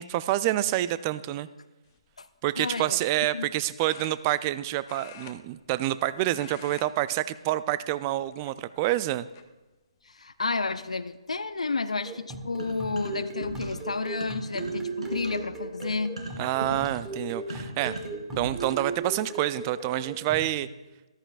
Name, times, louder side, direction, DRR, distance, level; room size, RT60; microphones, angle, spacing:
voice 1, 0.0-1.5 2.4-9.3 16.4-17.9 18.4-20.7, right 15 dB, 25° right, 16 dB, 0.3 m, -27 dB
sound 1, 1.8-2.1 3.8-4.6 4.8-6.0 6.3-6.9 7.2-7.4 8.2-8.8 9.3-9.4 10.9-11.0 11.3-11.7, left 9 dB, 30° left, 0.7 m, -48 dB
voice 2, 2.6-3.0 3.3-3.5 10.1-16.2, left 3 dB, 80° left, 13 dB, 0.5 m, -31 dB
sound 2, 12.1-20.6, right 3 dB, 10° right, 1.1 m, -37 dB
sound 3, 12.6-13.9 14.2-18.9, right 1 dB, 80° right, 2.8 m, -39 dB
14.0 x 13.0 x 2.4 m, 1.1 s
figure-of-eight pair, 140°, 3 cm